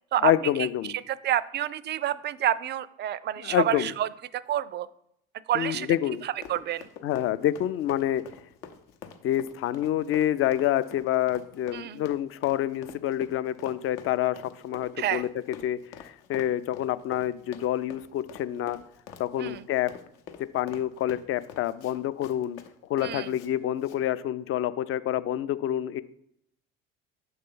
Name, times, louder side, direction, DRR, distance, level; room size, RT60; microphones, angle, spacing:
voice 1, 0.2-0.9 3.4-3.9 5.5-6.2 7.0-8.2 9.2-15.3 15.6-18.8 19.2-19.9 20.5-22.6 22.9-26.0, left 12 dB, 45° left, 15 dB, 0.5 m, -27 dB
voice 2, 0.9-4.9 5.5-5.9 6.2-6.9 11.7-12.0 15.0-15.2 19.4-19.7 23.0-23.3, right 11 dB, 35° right, 19 dB, 0.4 m, -29 dB
Run, 6.1-23.5 23.8-24.0, left 8 dB, 75° left, 0.8 m, -46 dB
6.8 x 3.2 x 5.4 m, 0.74 s
hypercardioid pair, 65°, 30 cm